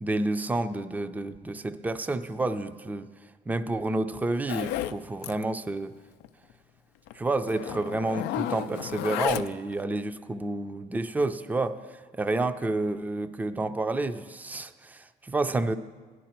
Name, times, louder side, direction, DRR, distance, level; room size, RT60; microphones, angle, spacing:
voice 1, 0.0-3.1 3.5-5.9 7.1-11.8 12.1-15.7, right 2 dB, 10° right, 10 dB, 0.4 m, -29 dB
Zipper (clothing), 4.5-5.0 5.2-5.4 5.7-5.8 6.2-6.3 7.1-7.2 7.5-9.7, left 13 dB, 90° left, 0.4 m, -32 dB
16.5 x 11.0 x 4.4 m, 1.5 s
cardioid pair, 110°, 17 cm